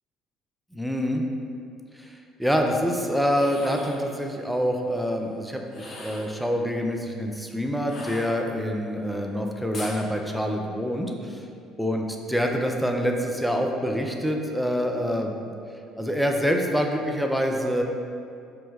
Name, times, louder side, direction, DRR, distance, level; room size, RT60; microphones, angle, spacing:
voice 1, 0.7-1.2 1.9-11.5 11.8-15.4 16.0-17.8, equal, ahead, 2 dB, 0.5 m, -26 dB
sound 1, 3.3-4.1 5.7-6.4 7.8-8.7 9.7-10.0, left 2 dB, 45° left, 0.7 m, -40 dB
5.1 x 2.2 x 3.4 m, 2.5 s
hypercardioid pair, 60°, 0 cm